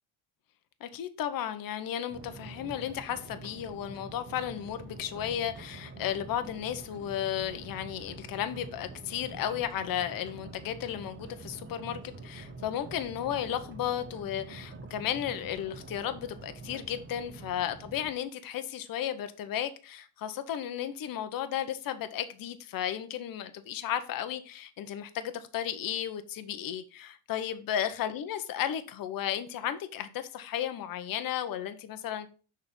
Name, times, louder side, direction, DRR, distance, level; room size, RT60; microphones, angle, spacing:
voice 1, 0.8-32.3, left 10 dB, 45° left, 0.9 m, -34 dB
sound 1, 2.1-18.1, right 3 dB, 25° right, 1.0 m, -46 dB
6.1 x 4.3 x 5.2 m
cardioid pair, 135°, 48 cm